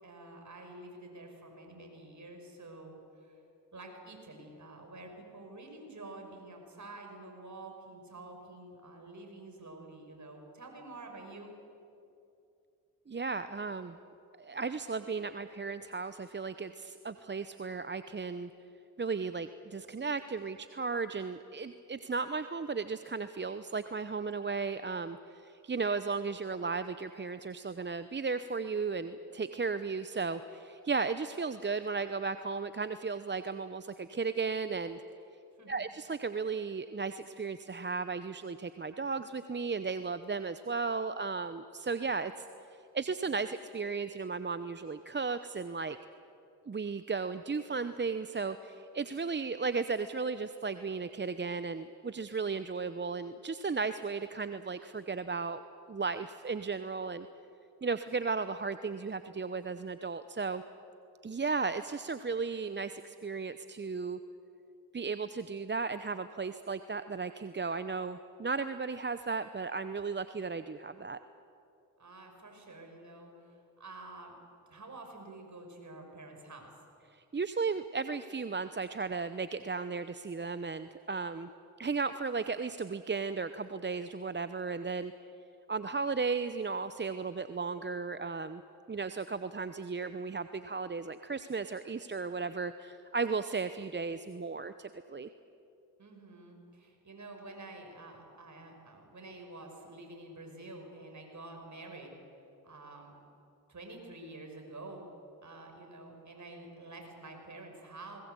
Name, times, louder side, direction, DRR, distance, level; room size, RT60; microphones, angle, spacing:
voice 1, 0.0-3.4 3.7-11.5 35.5-35.9 72.0-74.4 74.7-76.7 96.0-102.1 102.6-103.2 103.7-105.0 105.4-108.2, right 2 dB, 40° right, 2 dB, 6.2 m, -48 dB
voice 2, 13.1-14.0 14.4-18.5 19.0-35.0 35.7-42.5 42.9-46.0 46.7-55.6 55.9-57.3 57.8-60.6 61.2-64.2 64.9-71.2 77.1-81.5 81.8-85.1 85.7-88.6 88.9-95.3, right 4 dB, 25° right, 12 dB, 0.8 m, -35 dB
20.0 x 19.5 x 8.3 m, 2.6 s
supercardioid pair, 45°, 43 cm